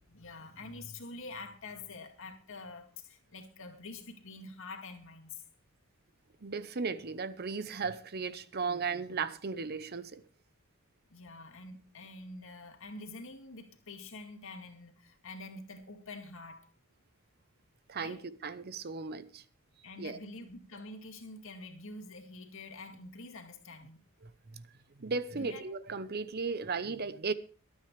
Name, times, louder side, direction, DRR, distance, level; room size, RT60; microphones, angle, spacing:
voice 1, 0.1-5.4 11.1-16.7 18.0-18.2 19.8-24.0 25.3-25.6, left 3 dB, 65° left, 2.1 m, -46 dB
voice 2, 6.4-10.2 17.9-19.4 20.0-20.2 24.5-24.6 25.0-27.3, right 4 dB, 45° right, 0.7 m, -36 dB
23.0 x 9.0 x 3.3 m
head